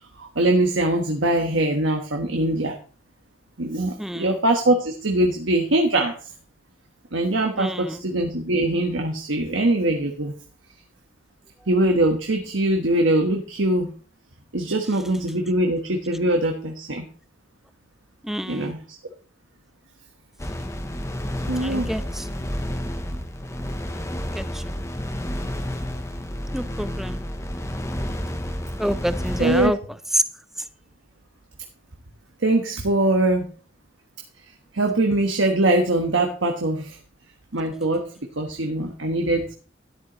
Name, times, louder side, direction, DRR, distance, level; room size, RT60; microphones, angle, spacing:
voice 1, 0.2-2.7 3.6-6.1 7.1-10.3 11.7-13.9 14.5-17.0 18.5-18.8 21.5-21.9 29.4-29.7 32.4-33.4 34.7-37.0 37.5-38.1 38.4-39.5, right 1 dB, 70° right, 3 dB, 1.3 m, -22 dB
voice 2, 4.0-4.4 7.6-8.0 18.2-18.7 21.6-22.3 24.3-24.7 26.5-27.2 28.8-29.8 30.1-30.2, equal, ahead, 12 dB, 0.5 m, -27 dB
sound 1, 20.4-29.7, equal, 15° left, 0.9 m, -30 dB
13.0 x 10.5 x 3.1 m, 0.39 s
head